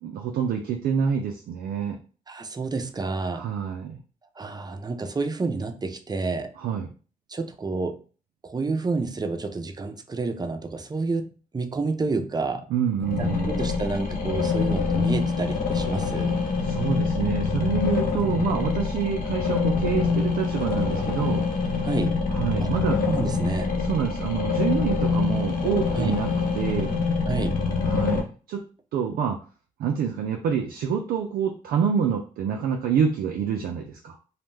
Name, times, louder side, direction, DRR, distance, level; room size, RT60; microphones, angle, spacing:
voice 1, 0.0-2.0 3.3-4.0 6.6-6.9 12.7-13.5 16.6-21.5 22.3-23.0 23.8-26.9 27.8-29.4 29.8-34.2, right 7 dB, 80° right, 2 dB, 0.4 m, -27 dB
voice 2, 2.3-3.5 4.4-6.5 7.3-8.0 8.4-12.7 13.2-16.4 21.8-22.2 22.6-22.7 23.0-23.7 25.9-26.1 27.3-27.6, right 3 dB, 25° right, 8 dB, 0.5 m, -29 dB
sound 1, 13.0-28.2, left 4 dB, 65° left, 0.8 m, -25 dB
2.6 x 2.1 x 3.2 m, 0.38 s
supercardioid pair, 50°, 15 cm